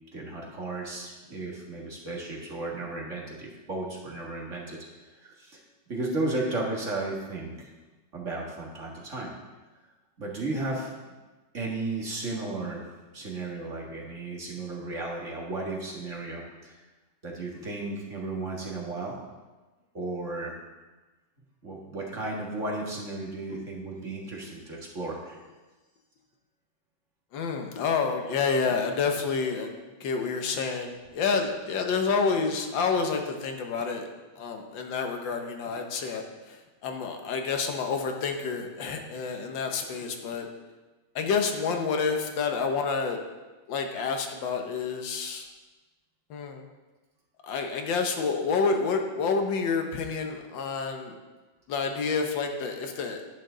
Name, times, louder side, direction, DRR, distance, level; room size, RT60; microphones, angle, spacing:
voice 1, 0.1-4.8 5.2-5.6 5.9-7.7 8.1-9.3 10.2-10.9 11.5-12.8 13.1-16.8 17.2-19.2 19.9-20.5 21.6-25.4, right 2 dB, 40° right, -3 dB, 2.0 m, -34 dB
voice 2, 27.3-29.7 30.0-34.1 34.4-36.2 36.8-40.5 41.1-43.2 43.7-45.4 46.3-46.6 47.4-51.2 51.7-53.2, left 5 dB, 80° left, 4 dB, 1.7 m, -28 dB
10.5 x 8.8 x 3.9 m, 1.2 s
omnidirectional pair, 2.0 m